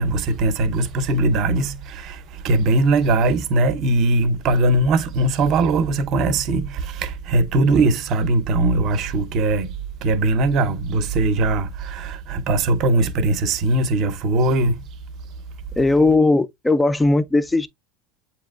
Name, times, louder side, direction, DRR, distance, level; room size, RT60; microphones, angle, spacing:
voice 1, 0.0-9.7 10.0-14.8, right 2 dB, 35° right, 0.6 m, -20 dB
voice 2, 15.8-17.7, left 2 dB, 5° left, 0.3 m, -17 dB
8.0 x 2.8 x 2.3 m
supercardioid pair, 170°, 0 cm